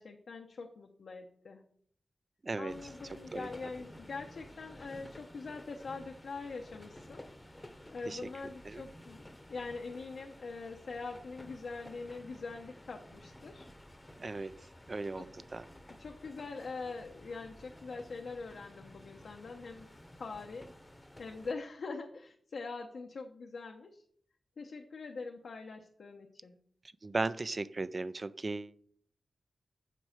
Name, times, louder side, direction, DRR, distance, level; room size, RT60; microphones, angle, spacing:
voice 1, 0.0-1.6 2.6-7.2 7.9-13.7 15.2-15.3 16.0-19.9 20.2-20.7 21.2-24.0 24.6-26.6, left 4 dB, 75° left, 2 dB, 0.8 m, -43 dB
voice 2, 2.4-2.7 3.3-3.5 8.1-8.3 8.6-8.8 14.2-14.5 14.9-15.6 27.0-28.7, right 3 dB, 35° right, 16 dB, 0.4 m, -36 dB
sound 1, 2.7-21.5, left 1 dB, 15° left, 0.9 m, -53 dB
7.5 x 5.5 x 6.5 m, 0.63 s
wide cardioid pair, 100°, 0 cm